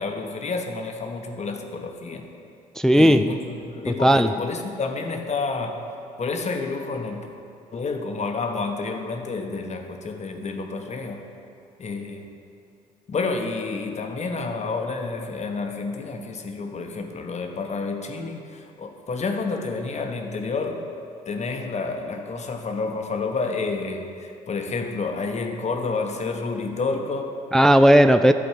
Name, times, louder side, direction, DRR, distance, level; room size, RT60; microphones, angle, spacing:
voice 1, 0.0-2.2 2.9-5.9 6.2-7.3 7.7-11.2 11.8-12.3 13.1-20.8 21.3-27.3, left 4 dB, 40° left, 3 dB, 1.2 m, -29 dB
voice 2, 2.8-3.3 3.9-4.3 27.5-28.3, equal, 5° left, 9 dB, 0.3 m, -15 dB
12.0 x 4.2 x 7.5 m, 2.5 s
hypercardioid pair, 60°, 18 cm